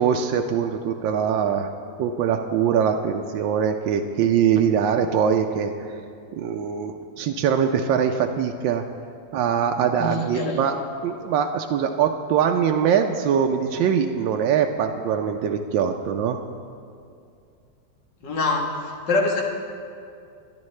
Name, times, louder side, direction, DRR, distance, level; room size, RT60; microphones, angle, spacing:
voice 1, 0.0-1.7 2.0-6.0 6.4-8.8 9.3-10.8 11.0-16.4, right 7 dB, 85° right, 4 dB, 1.3 m, -22 dB
voice 2, 10.0-10.6 18.2-19.4, left 2 dB, 70° left, 0 dB, 2.1 m, -24 dB
21.0 x 11.5 x 3.2 m, 2.4 s
omnidirectional pair, 2.0 m